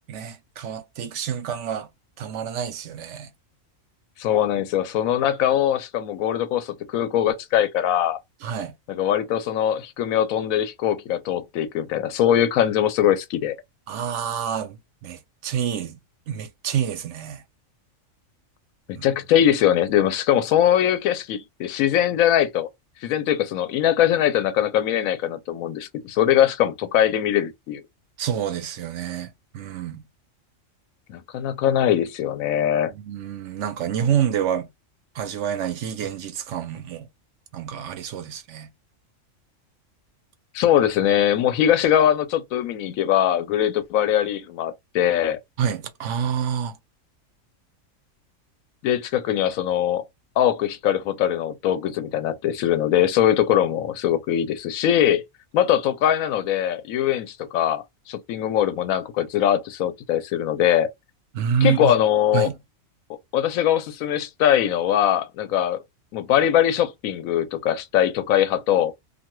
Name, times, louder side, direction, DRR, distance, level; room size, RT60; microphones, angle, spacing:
voice 1, 0.1-1.9 2.2-3.3 8.4-8.7 13.9-16.0 16.3-17.4 19.0-19.1 28.2-30.0 32.9-34.7 35.1-37.1 37.5-38.7 45.6-46.8 61.3-61.9 62.3-62.6, right 8 dB, 70° right, 0.8 m, -27 dB
voice 2, 4.2-8.2 8.9-13.5 18.9-22.7 23.0-27.8 31.1-32.9 40.5-45.4 48.8-50.0 50.4-55.2 55.5-60.9 61.6-62.5 63.3-65.8 66.1-68.9, left 10 dB, 85° left, 1.0 m, -21 dB
2.6 x 2.2 x 2.9 m
omnidirectional pair, 1.4 m